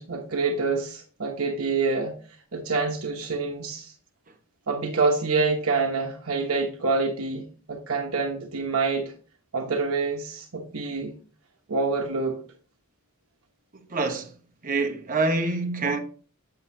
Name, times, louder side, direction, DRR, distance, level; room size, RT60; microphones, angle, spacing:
voice 1, 0.0-2.1 2.5-3.9 4.7-9.1 9.5-11.1 11.7-12.4, right 4 dB, 75° right, 1.1 m, -26 dB
voice 2, 13.9-14.3 14.6-16.0, right 3 dB, 40° right, 1.1 m, -26 dB
8.0 x 6.7 x 2.8 m
head